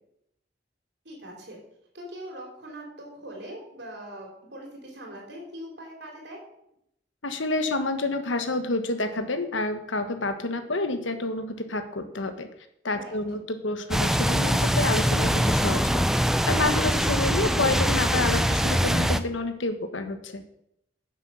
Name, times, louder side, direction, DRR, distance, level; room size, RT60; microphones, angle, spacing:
voice 1, 1.0-1.6 1.9-6.4 12.9-13.2, right 1 dB, 60° right, 0 dB, 3.9 m, -41 dB
voice 2, 7.2-12.5 12.8-16.0 16.5-20.4, left 2 dB, 90° left, 8 dB, 1.3 m, -29 dB
sound 1, 13.9-19.2, equal, ahead, 0.4 m, -23 dB
10.5 x 7.5 x 6.4 m, 0.77 s
head